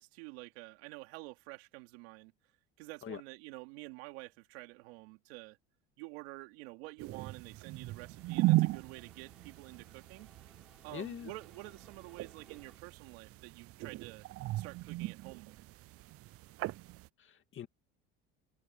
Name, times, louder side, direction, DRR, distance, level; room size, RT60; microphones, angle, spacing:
voice 1, 0.0-2.3 2.8-5.6 6.0-10.3 10.8-14.2 14.6-15.6, right 24 dB, 85° right, 3.5 m, -49 dB
sound 1, 7.0-17.1, right 18 dB, 50° right, 0.5 m, -37 dB
sound 2, 7.9-12.8, equal, ahead, 6.7 m, -65 dB
voice 2, 10.9-11.3 17.2-17.7, left 9 dB, 40° left, 2.6 m, -43 dB
supercardioid pair, 110°, 31 cm